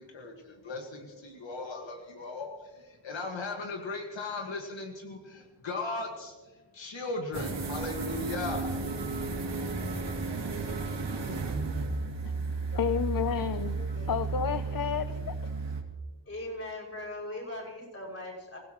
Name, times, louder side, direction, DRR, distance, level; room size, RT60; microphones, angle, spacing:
voice 1, 0.0-8.8, left 3 dB, 80° left, 1.8 m, -37 dB
sound 1, 7.3-15.8, right 3 dB, 65° right, 2.5 m, -33 dB
voice 2, 12.7-15.5, left 8 dB, 50° left, 0.6 m, -31 dB
voice 3, 16.3-18.6, left 1 dB, 35° left, 6.3 m, -39 dB
26.5 x 16.5 x 3.0 m
wide cardioid pair, 150°, 44 cm